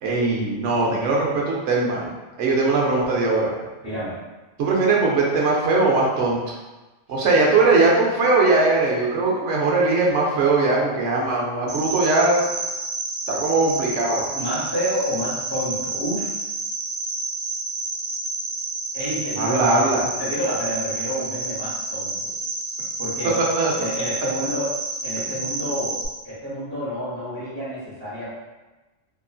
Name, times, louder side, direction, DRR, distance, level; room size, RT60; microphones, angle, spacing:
voice 1, 0.0-2.1 2.4-3.5 4.6-6.4 7.1-12.5 13.3-14.3 19.4-20.0 23.6-23.7, right 3 dB, 80° right, -2 dB, 1.0 m, -20 dB
voice 2, 3.8-4.2 14.3-16.4 18.9-22.3 23.0-23.4 23.8-24.7 25.0-28.2, equal, 25° right, -12 dB, 0.8 m, -29 dB
Cricket, 11.7-26.1, right 3 dB, 55° right, 0.5 m, -30 dB
2.9 x 2.5 x 2.3 m, 1.1 s
omnidirectional pair, 1.2 m